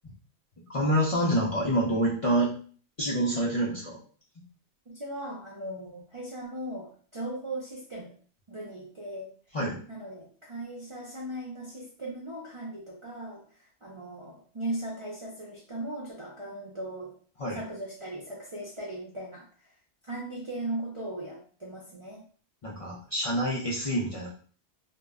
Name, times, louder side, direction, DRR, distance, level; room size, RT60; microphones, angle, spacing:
voice 1, 0.7-2.5 3.0-4.0 9.5-9.8 17.4-17.6 22.6-24.3, right 1 dB, 45° left, -5 dB, 0.4 m, -27 dB
voice 2, 4.9-8.1 8.5-9.3 9.9-13.4 13.8-17.1 17.5-19.7 20.0-22.2, right 1 dB, 40° right, -4 dB, 0.4 m, -38 dB
2.2 x 2.0 x 3.4 m, 0.43 s
omnidirectional pair, 1.1 m